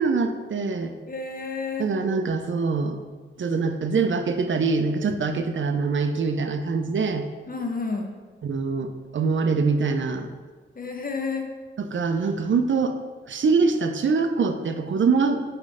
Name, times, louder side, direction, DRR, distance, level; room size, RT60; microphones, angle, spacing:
voice 1, 0.0-0.9 1.8-3.0 3.4-7.3 8.4-10.3 11.8-13.0 13.3-15.4, right 4 dB, 70° right, 7 dB, 0.5 m, -24 dB
voice 2, 1.1-1.9 7.5-8.2 10.8-11.5, left 4 dB, 45° left, 4 dB, 0.9 m, -30 dB
8.0 x 3.2 x 4.9 m, 1.4 s
wide cardioid pair, 85°, 20 cm